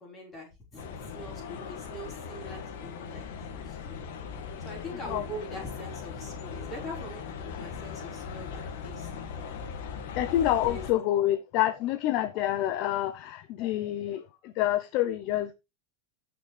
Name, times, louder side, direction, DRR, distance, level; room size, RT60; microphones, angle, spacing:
voice 1, 0.0-4.0 4.6-9.1 10.6-10.9, equal, 15° left, 5.0 m, -43 dB
sound 1, 0.8-10.9, left 6 dB, 65° left, 2.1 m, -39 dB
voice 2, 10.2-15.5, left 13 dB, 40° left, 0.7 m, -27 dB
15.5 x 6.1 x 3.4 m
supercardioid pair, 180°, 0 cm